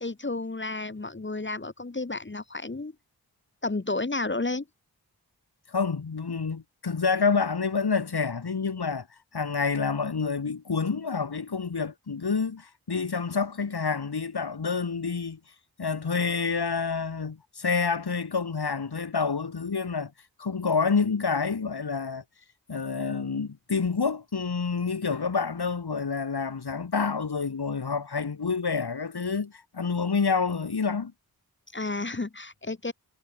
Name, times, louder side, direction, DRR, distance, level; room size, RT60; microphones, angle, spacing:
voice 1, 0.0-2.9 3.6-4.6 31.7-32.9, left 2 dB, 30° left, 1.4 m, -31 dB
voice 2, 5.7-9.1 9.3-15.4 15.8-20.1 20.4-22.2 22.7-31.1, left 5 dB, 75° left, 3.4 m, -28 dB
wide cardioid pair, 60°, 39 cm